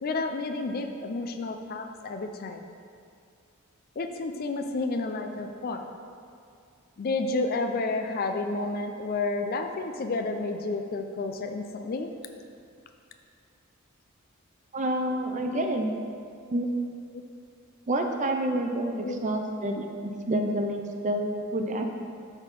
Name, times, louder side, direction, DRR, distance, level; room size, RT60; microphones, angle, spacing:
voice 1, 0.0-2.6 4.0-5.9 7.0-12.1 15.4-15.7 18.5-18.6 19.0-19.2, left 3 dB, 45° left, 6 dB, 0.4 m, -31 dB
voice 2, 14.7-15.9 16.5-16.7 17.9-19.9 20.3-21.8, right 1 dB, 35° right, 4 dB, 0.5 m, -28 dB
7.0 x 4.2 x 5.4 m, 2.3 s
head